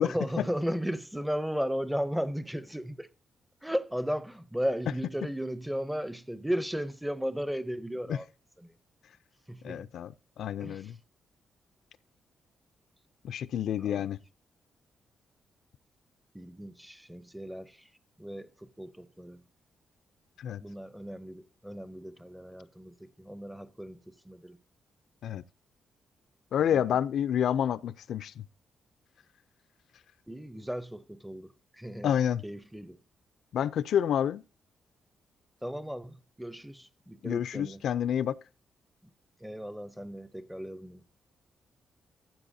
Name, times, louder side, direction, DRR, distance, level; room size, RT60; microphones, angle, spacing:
voice 1, 0.0-3.1 3.6-8.3 8.6-8.7 9.5-9.8 10.6-10.9 13.8-14.1 16.3-17.8 18.2-18.5 18.8-19.4 20.6-24.6 26.7-26.8 30.3-32.1 32.4-33.0 35.6-37.8 39.4-41.0, equal, 5° right, 0.5 m, -35 dB
voice 2, 9.6-10.1 10.4-11.0 13.2-14.2 20.4-20.6 25.2-25.4 26.5-28.4 32.0-32.4 33.5-34.4 37.2-38.3, left 9 dB, 70° left, 0.4 m, -28 dB
15.0 x 7.7 x 2.7 m
wide cardioid pair, 160°, 0 cm